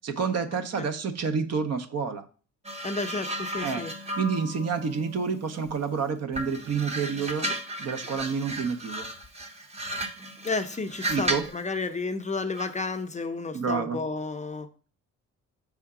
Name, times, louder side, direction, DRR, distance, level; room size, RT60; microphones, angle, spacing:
voice 1, 0.0-2.2 3.6-3.8 4.1-7.5 7.8-9.1 11.1-11.4 13.5-14.0, right 5 dB, 55° right, 7 dB, 0.9 m, -29 dB
sound 1, 2.6-5.9 6.3-11.6 12.6-12.8, right 1 dB, 20° right, 0.9 m, -35 dB
voice 2, 2.8-3.9 10.4-14.7, left 3 dB, 25° left, 7 dB, 0.6 m, -31 dB
5.5 x 3.5 x 4.9 m, 0.39 s
cardioid pair, 90°, 30 cm